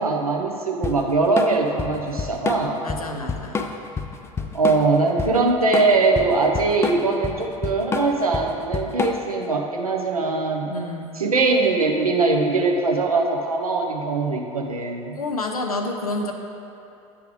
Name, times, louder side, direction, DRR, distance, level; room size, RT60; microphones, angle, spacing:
voice 1, 0.0-2.8 4.5-10.7 11.2-15.2, right 3 dB, 85° right, 0 dB, 0.7 m, -21 dB
Drum kit / Drum, 0.8-9.4, left 4 dB, 15° left, 0.4 m, -28 dB
voice 2, 2.8-3.7 10.7-11.1 15.2-16.3, left 2 dB, 85° left, 3 dB, 0.5 m, -29 dB
8.5 x 3.4 x 4.9 m, 2.7 s
figure-of-eight pair, 75°, 18 cm